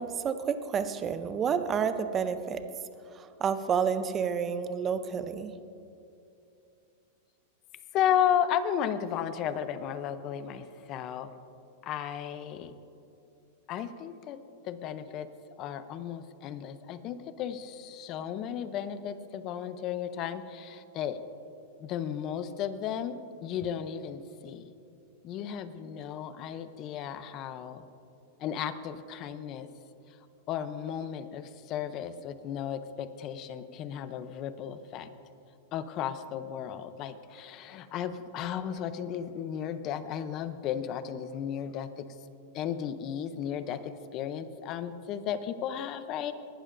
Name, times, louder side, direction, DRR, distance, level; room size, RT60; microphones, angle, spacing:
voice 1, 0.0-2.6 3.4-5.5, right 7 dB, 20° right, 11 dB, 0.5 m, -29 dB
voice 2, 7.9-11.3 11.8-12.7 13.7-14.4 14.6-15.3 15.6-21.2 21.8-24.7 25.2-27.8 28.4-29.7 30.5-35.1 35.7-42.1 42.5-46.3, left 9 dB, 35° left, 12 dB, 0.6 m, -34 dB
19.0 x 12.0 x 2.6 m, 2.7 s
supercardioid pair, 160°, 0 cm